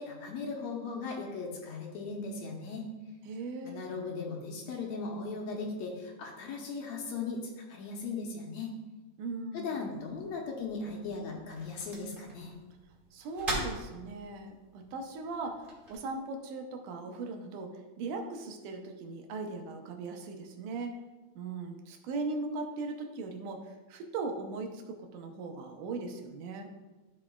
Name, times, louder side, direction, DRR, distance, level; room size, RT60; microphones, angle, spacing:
voice 1, 0.0-2.9 3.6-8.7 9.5-12.5, left 4 dB, 70° left, 0 dB, 2.0 m, -38 dB
voice 2, 3.3-3.8 9.2-9.8 13.1-15.6 15.9-21.0 21.4-26.7, right 3 dB, 85° right, 3 dB, 2.4 m, -39 dB
sound 1, 9.9-16.0, right 1 dB, 30° right, 0.9 m, -42 dB
14.0 x 4.8 x 2.3 m, 1.2 s
omnidirectional pair, 3.6 m